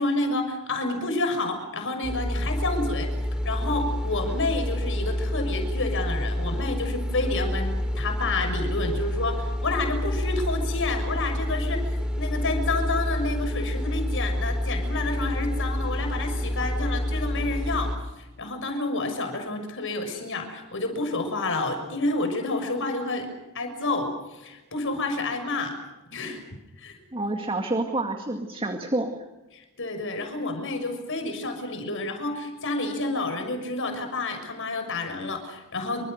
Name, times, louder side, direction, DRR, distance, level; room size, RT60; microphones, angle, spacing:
voice 1, 0.0-3.1 3.4-11.8 12.2-17.9 18.4-23.3 23.5-25.8 26.1-26.4 26.8-27.0 29.5-36.1, left 2 dB, 60° left, 6 dB, 6.3 m, -29 dB
sound 1, 2.0-18.0, equal, 5° right, 3.5 m, -28 dB
voice 2, 27.1-29.1, right 2 dB, 25° right, 5 dB, 2.1 m, -28 dB
27.5 x 26.0 x 6.7 m, 1.1 s
head